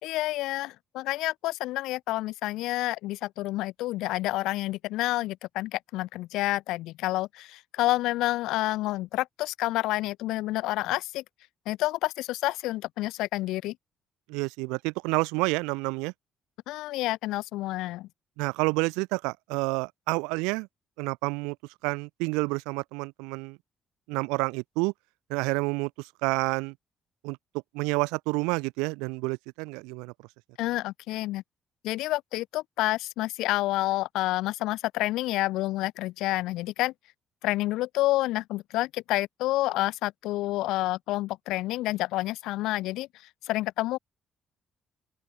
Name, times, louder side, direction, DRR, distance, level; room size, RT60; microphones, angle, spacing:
voice 1, 0.0-11.2 11.7-13.7 16.7-18.1 30.6-31.4 31.8-36.9 37.4-43.1 43.4-44.0, left 17 dB, 80° left, 1.3 m, -29 dB
voice 2, 14.3-16.1 18.4-20.7 21.0-21.6 21.8-23.6 24.1-24.9 25.3-25.9 26.2-26.7 27.2-27.4 27.7-30.1, right 28 dB, 85° right, 1.8 m, -29 dB
open air
supercardioid pair, 60°, 0 cm